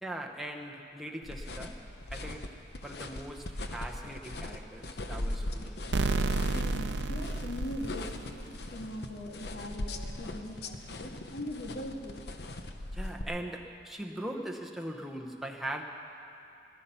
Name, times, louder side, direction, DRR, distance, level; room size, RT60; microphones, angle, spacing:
voice 1, 0.0-1.8 2.1-2.6 2.8-5.8 12.9-15.8, right 1 dB, ahead, 0 dB, 0.8 m, -40 dB
sound 1, 1.2-13.2, left 1 dB, 65° left, 0.9 m, -40 dB
sound 2, 5.9-8.6, right 3 dB, 80° right, 0.6 m, -31 dB
voice 2, 6.5-12.2, equal, 85° left, 0 dB, 2.1 m, -41 dB
20.0 x 12.5 x 5.6 m, 2.7 s
head